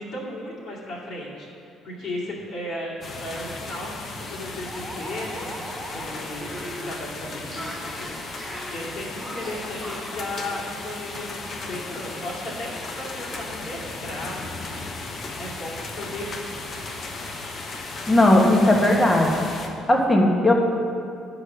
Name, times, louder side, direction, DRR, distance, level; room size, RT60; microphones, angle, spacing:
voice 1, 0.0-5.6 5.9-14.9 15.4-16.5, left 1 dB, 60° left, -6 dB, 2.4 m, -35 dB
sound 1, 3.0-19.7, left 3 dB, 40° left, 1.0 m, -35 dB
sound 2, 3.6-3.7 4.0-10.2, right 1 dB, ahead, 2.0 m, -39 dB
voice 2, 18.1-19.3 19.9-20.5, left 1 dB, 20° left, 0 dB, 1.3 m, -17 dB
10.5 x 5.0 x 7.1 m, 2.5 s
cardioid pair, 125°, 0 cm